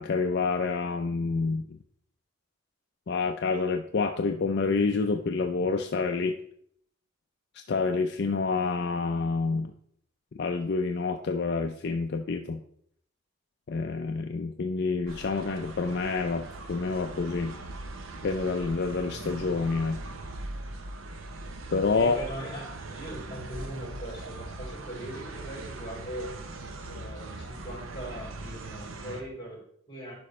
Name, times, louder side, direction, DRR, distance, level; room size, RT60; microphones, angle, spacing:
voice 1, 0.0-1.8 3.1-6.4 7.7-9.7 10.4-12.6 13.7-17.6 18.2-20.0 21.7-22.2, left 4 dB, 55° left, 5 dB, 0.4 m, -28 dB
sound 1, 15.1-29.2, right 2 dB, 85° right, 0.8 m, -40 dB
voice 2, 21.9-26.3 26.9-30.1, right 1 dB, 25° left, -2 dB, 3.5 m, -40 dB
11.0 x 5.0 x 3.2 m, 0.66 s
head